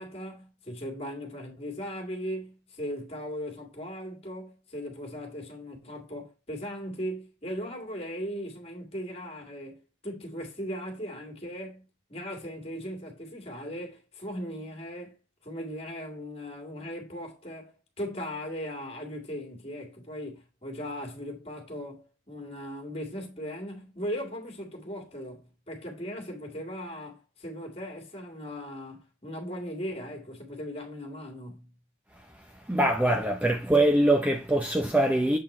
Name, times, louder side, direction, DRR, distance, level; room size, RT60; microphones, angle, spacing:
voice 1, 0.0-15.2 15.4-31.7, equal, 30° left, 2.0 m, -38 dB
voice 2, 32.7-35.4, right 1 dB, 5° right, 0.5 m, -23 dB
7.6 x 4.1 x 4.2 m
head